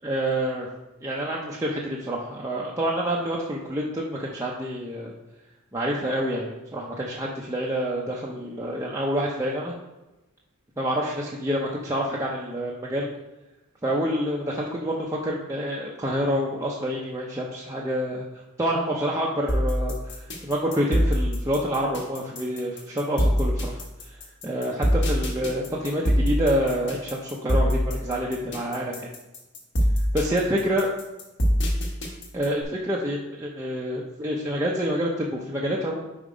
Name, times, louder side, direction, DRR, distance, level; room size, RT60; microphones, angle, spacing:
voice 1, 0.0-0.7 1.0-5.1 5.7-9.7 10.8-13.1 13.8-18.2 18.6-23.8 24.1-24.2 24.4-29.1 30.1-30.9 32.3-36.0, equal, 15° right, -4 dB, 0.5 m, -27 dB
sound 1, 19.5-32.6, equal, 50° left, 1.3 m, -24 dB
5.3 x 4.3 x 4.9 m, 1.0 s
head